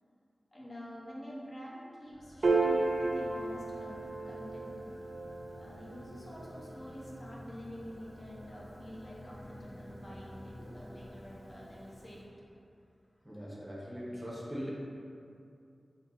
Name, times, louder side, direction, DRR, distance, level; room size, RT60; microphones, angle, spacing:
voice 1, 0.5-4.8 5.5-12.6, equal, 40° left, -5 dB, 0.6 m, -47 dB
sound 1, 2.0-12.5, equal, 90° left, 1.0 m, -51 dB
Piano, 2.4-9.1, right 3 dB, 80° right, 0.4 m, -35 dB
voice 2, 13.2-14.7, equal, 15° right, -6 dB, 0.7 m, -40 dB
2.6 x 2.6 x 3.9 m, 2.6 s
wide cardioid pair, 65°, 0 cm